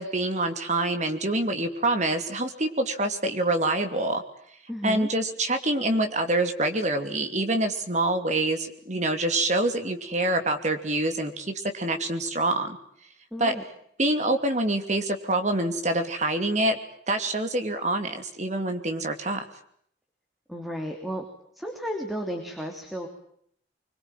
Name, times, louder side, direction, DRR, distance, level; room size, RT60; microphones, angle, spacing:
voice 1, 0.0-4.2 4.8-12.8 13.4-13.6 14.0-16.8 17.1-19.4, right 2 dB, 40° right, 7 dB, 2.8 m, -26 dB
voice 2, 4.7-5.1 13.3-13.6 20.5-21.2 21.5-23.1, equal, ahead, 2 dB, 3.1 m, -33 dB
25.0 x 22.5 x 9.1 m, 0.67 s
head